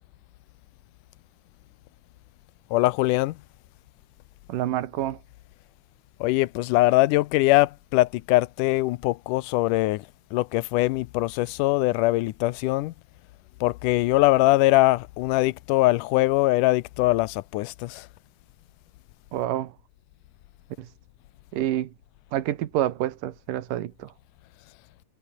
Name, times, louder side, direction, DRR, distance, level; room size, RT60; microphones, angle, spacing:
voice 1, 2.7-3.4 6.2-10.1 10.3-12.9 13.6-18.1, left 19 dB, 85° left, 2.2 m, -22 dB
voice 2, 4.5-5.2 19.3-19.7 20.8-20.9 21.5-21.9 22.3-24.1, right 13 dB, 85° right, 2.9 m, -28 dB
omnidirectional pair, 3.7 m